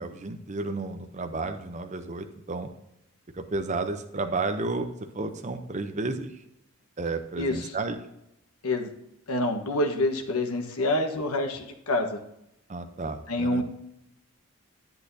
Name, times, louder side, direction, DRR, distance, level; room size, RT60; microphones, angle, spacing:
voice 1, 0.0-2.7 3.3-6.4 7.0-8.0 12.7-13.6, right 3 dB, 30° right, 7 dB, 0.6 m, -32 dB
voice 2, 7.4-7.7 8.6-8.9 9.3-12.2 13.3-13.6, left 1 dB, 85° left, 4 dB, 1.3 m, -27 dB
10.5 x 8.4 x 2.7 m, 0.83 s
head